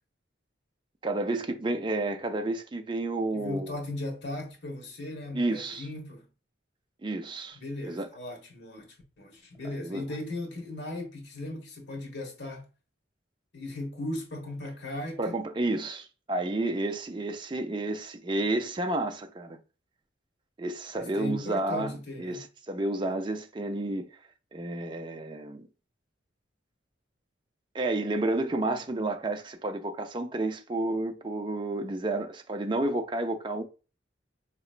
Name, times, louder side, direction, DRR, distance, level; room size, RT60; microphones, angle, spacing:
voice 1, 1.0-3.7 5.3-5.9 7.0-7.6 7.8-8.1 9.6-10.1 15.2-19.6 20.6-24.1 24.5-25.7 27.7-33.6, right 2 dB, 25° right, 0.4 m, -31 dB
voice 2, 3.3-6.2 7.5-12.7 13.5-15.4 20.9-22.4, left 1 dB, 60° left, 1.2 m, -37 dB
4.2 x 2.9 x 2.4 m
head